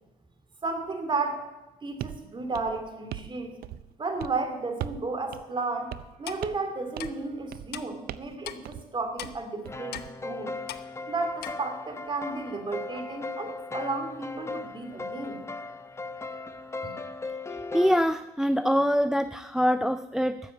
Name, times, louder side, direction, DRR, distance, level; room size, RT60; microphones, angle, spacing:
voice 1, 0.6-1.4 1.8-3.5 4.0-10.6 11.1-15.4 16.8-16.9, right 3 dB, 30° right, 6 dB, 2.6 m, -33 dB
sound 1, 2.0-2.2 2.5-3.3 3.6-3.9 4.2-4.4 4.8-5.1 5.3-5.4 5.9-6.2 6.4-6.7 7.0-7.2 7.5-7.7 8.1-8.4 8.7-8.9 9.2-10.1, right 12 dB, 65° right, 0.6 m, -39 dB
Clock, 6.3-6.4 7.0-7.1 7.7-7.8 8.4-8.6 9.2-9.3 9.9-10.1 10.7-10.8 11.4-11.5, left 13 dB, 70° left, 0.9 m, -38 dB
sound 2, 9.6-18.0, left 3 dB, 15° left, 0.8 m, -38 dB
voice 2, 17.7-20.4, equal, 5° right, 12 dB, 0.4 m, -24 dB
13.0 x 7.4 x 8.5 m, 1.0 s
cardioid pair, 110°, 17 cm